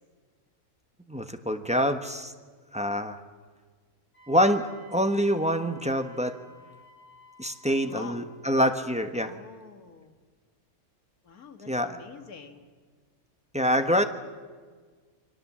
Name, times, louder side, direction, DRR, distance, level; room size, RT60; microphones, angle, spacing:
voice 1, 1.1-2.3 2.7-3.2 4.3-6.4 7.4-9.3 11.7-12.0 13.5-14.0, equal, 5° right, 7 dB, 1.0 m, -25 dB
Wind instrument woodwind instrument, 4.1-8.3, right 1 dB, 50° left, 7.4 m, -54 dB
voice 2, 7.9-8.3 9.2-10.1 11.2-12.7, left 4 dB, 75° left, 6 dB, 2.2 m, -45 dB
28.5 x 23.0 x 7.4 m, 1.5 s
omnidirectional pair, 1.6 m